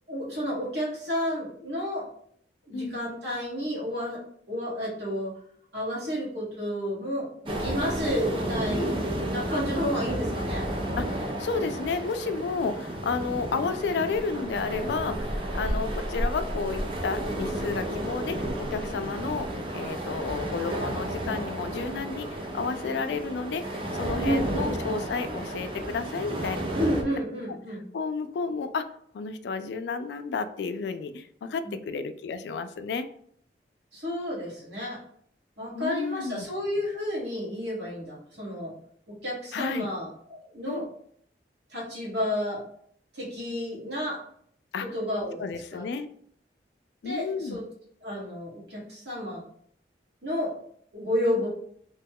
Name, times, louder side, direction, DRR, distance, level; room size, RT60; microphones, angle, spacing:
voice 1, 0.1-2.1 2.7-4.2 4.5-5.3 5.7-9.0 9.3-10.6 24.2-25.0 26.7-27.8 31.6-31.8 33.9-35.0 35.6-38.7 39.1-40.9 41.7-42.6 43.1-44.2 44.8-45.4 45.7-45.8 47.0-47.6 48.0-49.4 50.2-50.6 50.9-51.5, equal, 80° right, -5 dB, 1.5 m, -31 dB
sound 1, 7.5-27.0, right 1 dB, 30° right, 0.4 m, -32 dB
voice 2, 11.0-19.5 19.7-23.6 23.9-26.7 27.9-28.9 29.1-33.1 35.7-36.5 39.5-39.9 40.7-40.9 44.7-44.9 45.4-46.1 47.0-47.6, left 4 dB, 75° left, 10 dB, 0.3 m, -31 dB
2.9 x 2.2 x 3.5 m, 0.64 s
head